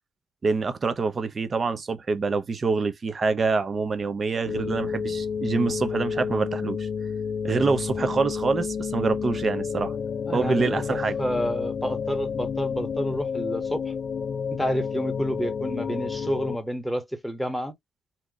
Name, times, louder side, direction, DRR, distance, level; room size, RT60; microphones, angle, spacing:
voice 1, 0.4-6.9 7.4-9.9 10.3-11.2, right 4 dB, 35° right, 0.8 m, -26 dB
sound 1, 4.5-16.6, left 6 dB, 50° left, 0.4 m, -30 dB
voice 2, 10.3-13.9 14.6-17.7, equal, 5° left, 1.1 m, -29 dB
2.9 x 2.4 x 3.8 m
cardioid pair, 90°, 0 cm